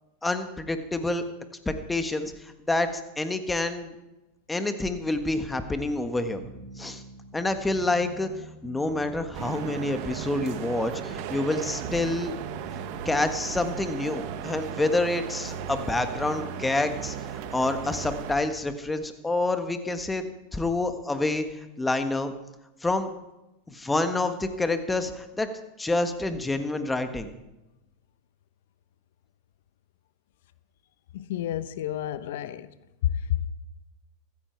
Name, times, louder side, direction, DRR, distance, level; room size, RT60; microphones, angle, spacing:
voice 1, 0.2-1.2 1.6-3.9 4.5-6.4 6.8-7.0 7.3-8.3 8.6-12.3 13.0-20.2 20.5-21.4 21.8-22.3 22.8-23.1 23.7-25.5 25.8-27.3, left 2 dB, 10° left, 1.6 m, -28 dB
sound 1, 6.4-18.2, right 6 dB, 75° right, 2.4 m, -44 dB
sound 2, 9.3-18.4, right 8 dB, 60° right, 1.4 m, -36 dB
voice 2, 31.1-32.7 33.0-33.5, left 11 dB, 70° left, 0.9 m, -30 dB
15.0 x 14.0 x 4.6 m
hypercardioid pair, 105°, 0 cm